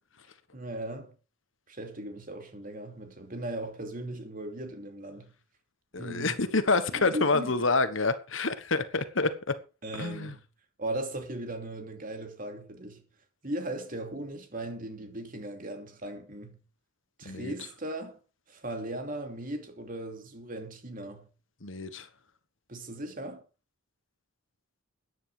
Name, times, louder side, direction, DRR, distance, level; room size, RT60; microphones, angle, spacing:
voice 1, 0.5-1.1 1.7-5.3 6.0-6.3 6.9-7.5 9.8-10.4 10.8-13.0 13.4-16.6 17.2-18.2 18.5-21.3 22.7-23.4, right 1 dB, 40° right, 2.9 m, -38 dB
voice 2, 5.9-9.5 9.9-10.4 17.2-17.5 21.6-22.1, left 3 dB, 65° left, 1.4 m, -28 dB
14.0 x 9.8 x 5.1 m
head